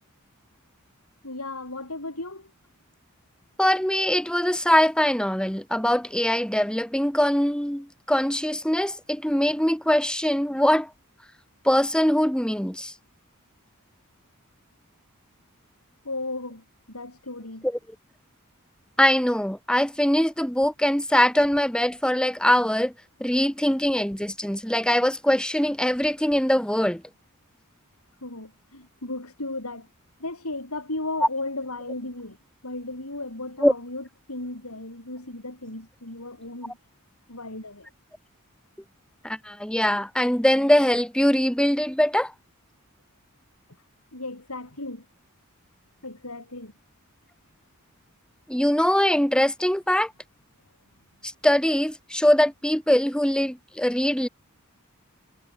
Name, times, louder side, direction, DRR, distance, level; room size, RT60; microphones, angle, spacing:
voice 1, 1.2-2.5 16.0-17.7 28.2-29.9 30.2-32.4 32.6-36.8 37.3-37.9 44.1-45.1 46.0-46.7, left 2 dB, 85° left, 7.8 m, -35 dB
voice 2, 3.6-10.9 11.6-12.9 17.6-17.8 19.0-22.9 23.2-27.0 33.6-33.7 39.2-42.3 48.5-50.1 51.2-54.3, equal, 5° left, 2.6 m, -22 dB
head